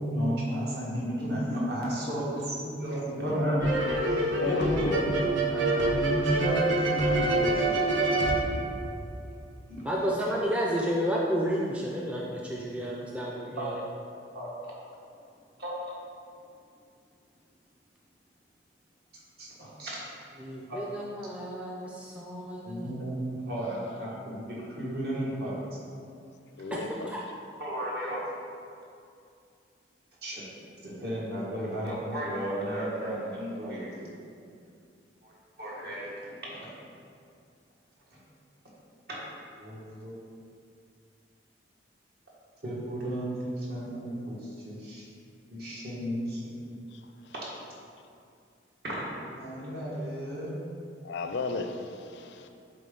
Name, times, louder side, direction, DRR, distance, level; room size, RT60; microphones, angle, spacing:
voice 1, 0.0-3.8 4.4-8.1 9.7-9.9 13.6-13.7 14.3-14.7 15.6-15.7 19.4-20.0 20.7-20.8 22.6-25.6 27.6-28.2 30.2-30.4 30.8-34.1 35.2-35.3 35.6-36.1 36.4-36.7 39.1-39.3 39.6-40.1 42.6-45.1 45.5-46.4 48.8-49.1 49.4-50.5, equal, 55° right, -5 dB, 1.5 m, -33 dB
sound 1, 3.6-9.4, right 2 dB, 80° right, 0.8 m, -26 dB
voice 2, 4.2-5.2 26.6-27.2 46.9-47.0 51.0-52.5, left 3 dB, 65° left, 6 dB, 0.4 m, -33 dB
voice 3, 9.8-13.8 20.4-23.0 26.7-26.8 27.1-27.2, equal, 5° right, -4 dB, 0.4 m, -31 dB
7.6 x 3.9 x 3.8 m, 2.4 s
head